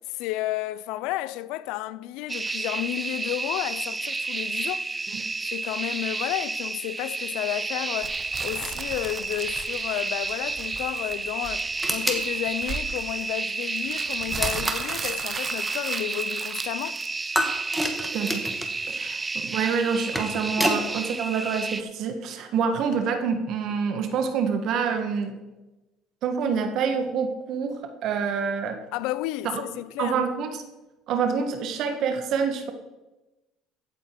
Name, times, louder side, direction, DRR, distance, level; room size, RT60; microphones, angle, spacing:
voice 1, 0.0-4.9 5.5-17.0 28.9-30.2, left 15 dB, 75° left, 0.5 m, -32 dB
sound 1, 2.3-21.8, right 3 dB, 20° right, 0.6 m, -31 dB
sound 2, 8.0-17.5, right 5 dB, 35° right, 1.2 m, -37 dB
sound 3, 11.8-12.3 14.4-14.9 17.3-18.7 19.9-20.8, equal, ahead, 2.0 m, -28 dB
voice 2, 18.1-18.5 18.9-25.4 26.2-28.8 29.5-29.6 30.0-30.6 31.1-32.7, right 6 dB, 60° right, 1.5 m, -27 dB
15.0 x 8.3 x 4.7 m
supercardioid pair, 85°, 0 cm